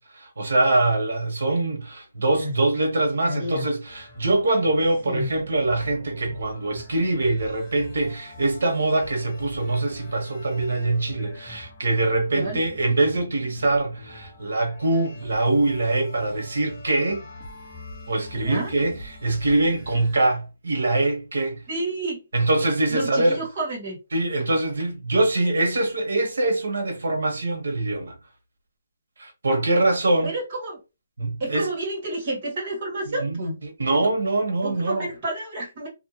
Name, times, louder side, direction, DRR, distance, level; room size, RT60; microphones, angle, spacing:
voice 1, 0.0-17.2 18.1-21.6 22.3-23.4 24.1-28.2 29.2-30.3 31.2-31.7 33.1-35.1, right 2 dB, 85° right, 1.1 m, -23 dB
voice 2, 3.3-3.6 5.1-5.3 12.3-12.6 18.4-18.7 21.7-22.2 22.9-24.0 30.2-30.8 31.4-33.6 34.6-35.9, right 1 dB, 30° right, 1.4 m, -30 dB
sound 1, 3.8-20.3, left 1 dB, 5° left, 1.2 m, -44 dB
2.7 x 2.5 x 2.8 m
hypercardioid pair, 175°, 0 cm